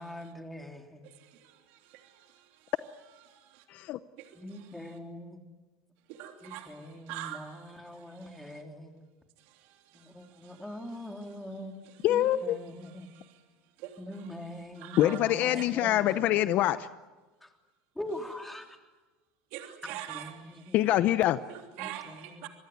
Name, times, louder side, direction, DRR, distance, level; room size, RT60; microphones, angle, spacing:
voice 1, 0.0-1.0 4.4-5.4 6.4-8.9 9.9-11.8 12.1-13.1 14.0-16.4 17.4-17.5 18.0-18.8 19.9-20.8 21.8-22.5, left 1 dB, 5° left, 3 dB, 3.4 m, -43 dB
voice 2, 1.0-2.4 3.3-3.6 4.2-4.4 6.1-8.6 9.5-10.1 10.4-10.6 13.0-13.4 13.8-14.0 14.8-15.2 15.5-15.7 19.5-20.7 21.5-22.5, right 13 dB, 65° right, 4 dB, 3.2 m, -45 dB
voice 3, 3.7-4.0 12.0-12.6 15.0-16.9 20.7-21.4, left 13 dB, 50° left, 13 dB, 0.8 m, -25 dB
25.5 x 21.0 x 9.5 m, 1.2 s
supercardioid pair, 120°, 3 cm